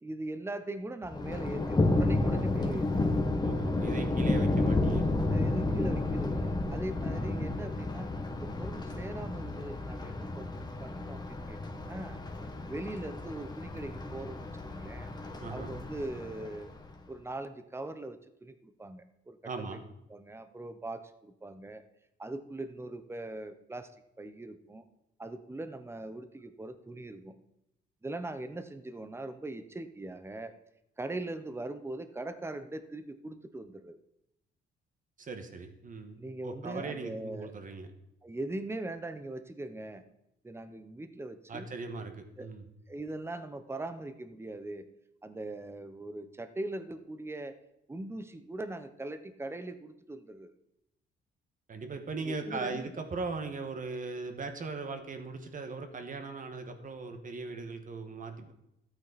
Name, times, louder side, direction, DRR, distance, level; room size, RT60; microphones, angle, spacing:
voice 1, 0.0-3.1 5.3-8.1 8.4-12.2 12.7-15.1 15.5-16.8 17.1-19.4 19.7-19.8 20.1-21.8 22.2-23.9 24.2-24.8 25.2-27.3 28.0-30.5 31.0-34.0 36.2-37.5 38.2-40.0 40.4-41.7 42.4-42.5 42.9-44.9 45.2-47.6 47.9-50.5 52.2-52.9, right 2 dB, 10° right, 10 dB, 0.9 m, -41 dB
Thunder, 1.0-17.0, left 2 dB, 20° left, 1.4 m, -31 dB
voice 2, 3.4-5.0 15.4-15.7 19.4-19.8 35.2-37.9 41.5-42.6 51.7-58.5, right 3 dB, 40° right, 6 dB, 1.5 m, -39 dB
13.0 x 8.9 x 4.1 m, 0.82 s
cardioid pair, 90°, 20 cm